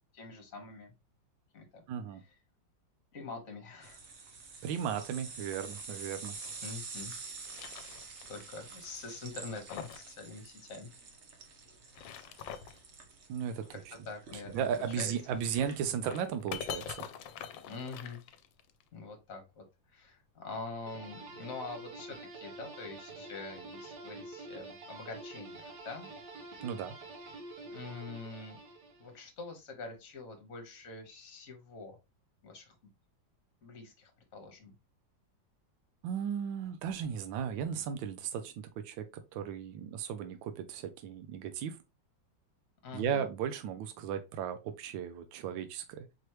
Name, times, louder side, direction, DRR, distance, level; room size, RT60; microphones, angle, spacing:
voice 1, 0.1-0.9 1.5-1.8 2.2-2.3 3.1-4.0 6.6-7.1 8.3-10.9 13.7-13.8 14.0-15.1 17.7-18.2 18.9-26.1 27.7-28.6 29.0-32.0 32.4-32.8 33.6-34.7 42.8-43.3, left 4 dB, 50° left, 1.4 m, -45 dB
voice 2, 1.9-2.2 4.6-6.3 13.3-13.9 14.5-17.1 26.6-27.0 36.0-39.0 39.3-41.8 42.9-46.1, right 8 dB, 85° right, 1.3 m, -35 dB
sound 1, 3.8-15.8, right 4 dB, 50° right, 0.9 m, -48 dB
sound 2, 4.9-6.7 7.2-8.4 8.7-8.8 9.3-10.1 10.4-10.5 11.7-12.8 14.7-18.8, left 9 dB, 75° left, 1.3 m, -45 dB
sound 3, 20.9-29.2, right 2 dB, 65° right, 1.5 m, -47 dB
4.7 x 3.0 x 2.9 m
omnidirectional pair, 2.1 m